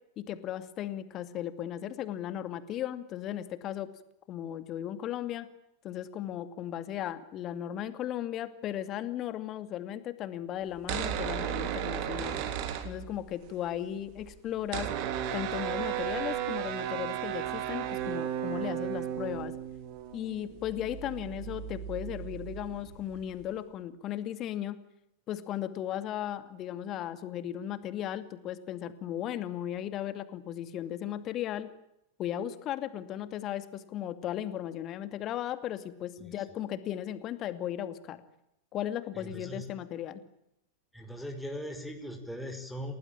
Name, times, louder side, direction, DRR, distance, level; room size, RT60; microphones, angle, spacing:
voice 1, 0.2-3.9 4.3-5.5 5.8-12.4 12.8-14.9 15.3-19.5 20.1-24.8 25.3-31.7 32.2-38.2 38.7-40.2, left 11 dB, 35° left, 11 dB, 2.5 m, -36 dB
sound 1, 10.7-13.5 13.7-13.8 14.0-23.4, right 10 dB, 45° right, 3.3 m, -35 dB
voice 2, 39.2-39.7 40.9-42.9, equal, ahead, 2 dB, 5.2 m, -40 dB
30.0 x 19.5 x 9.0 m, 0.85 s
figure-of-eight pair, 90°, 0 cm